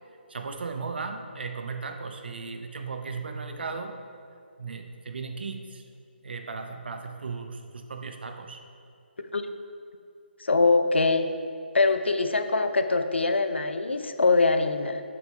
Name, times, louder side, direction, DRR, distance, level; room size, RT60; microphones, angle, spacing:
voice 1, 0.3-4.0 4.6-5.8 6.2-8.6, right 4 dB, 60° right, 6 dB, 0.7 m, -36 dB
voice 2, 10.4-11.3 11.7-15.0, left 3 dB, 80° left, 8 dB, 0.6 m, -23 dB
9.4 x 7.6 x 2.3 m, 2.5 s
figure-of-eight pair, 150°, 6 cm